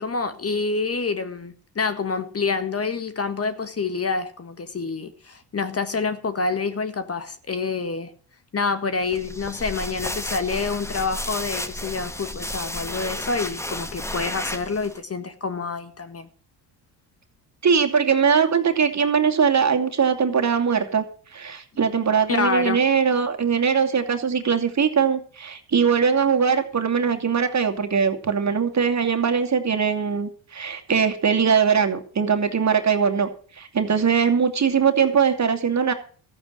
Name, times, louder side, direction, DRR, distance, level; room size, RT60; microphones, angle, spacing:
voice 1, 0.0-8.1 8.5-16.3 22.3-22.8, left 4 dB, 30° left, 1.6 m, -27 dB
sound 1, 9.1-15.0, left 1 dB, 5° left, 1.2 m, -32 dB
voice 2, 17.6-21.0 21.3-33.3 33.6-35.9, right 6 dB, 35° right, 2.5 m, -21 dB
14.0 x 9.0 x 6.2 m
supercardioid pair, 65°, 46 cm